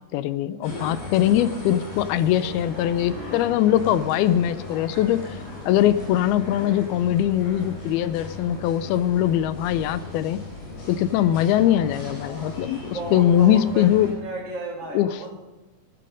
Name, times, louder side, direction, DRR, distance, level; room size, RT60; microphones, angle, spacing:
voice 1, 0.1-5.4 5.7-10.4 10.9-14.1 14.9-15.2, left 11 dB, 80° left, 14 dB, 2.5 m, -21 dB
sound 1, 0.6-14.1, left 2 dB, 65° left, 7.3 m, -37 dB
voice 2, 12.9-15.3, right 2 dB, 40° right, 0 dB, 2.8 m, -33 dB
17.0 x 12.0 x 5.3 m, 1.2 s
omnidirectional pair, 4.5 m